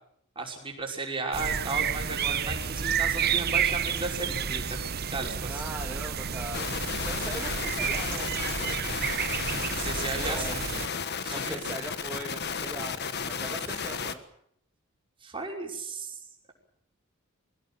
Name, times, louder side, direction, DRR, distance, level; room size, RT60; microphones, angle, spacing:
voice 1, 0.4-5.6 9.8-10.7 11.2-11.7 13.5-14.0 15.2-16.2, right 3 dB, 25° right, 0 dB, 5.5 m, -35 dB
sound 1, 1.3-10.9, right 7 dB, 50° right, 0.9 m, -30 dB
Walk footsteps, 2.5-5.5 5.8-6.1 6.3-7.7 8.1-8.5, equal, 70° left, 4.9 m, -48 dB
voice 2, 5.5-8.8 10.1-10.6 11.3-14.2, right 1 dB, 10° right, -2 dB, 2.8 m, -40 dB
sound 2, 6.5-14.1, left 6 dB, 55° left, 1.5 m, -33 dB
23.0 x 17.0 x 9.1 m, 0.70 s
head